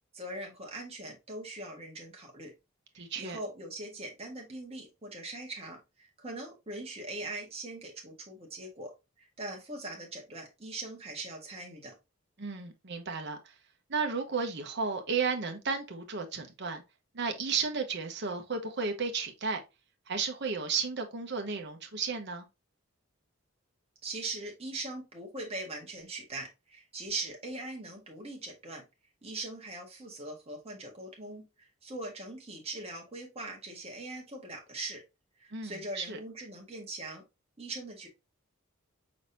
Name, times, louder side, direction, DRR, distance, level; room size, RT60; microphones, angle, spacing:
voice 1, 0.1-2.5 2.9-11.9 24.0-28.8 29.2-35.0 35.4-37.2 37.6-38.1, right 2 dB, 30° right, 1.6 m, -41 dB
voice 2, 3.0-3.4 12.4-13.5 13.9-16.8 17.1-19.6 20.1-22.5 35.5-36.2, right 5 dB, 55° right, 1.0 m, -33 dB
5.1 x 3.9 x 2.6 m
head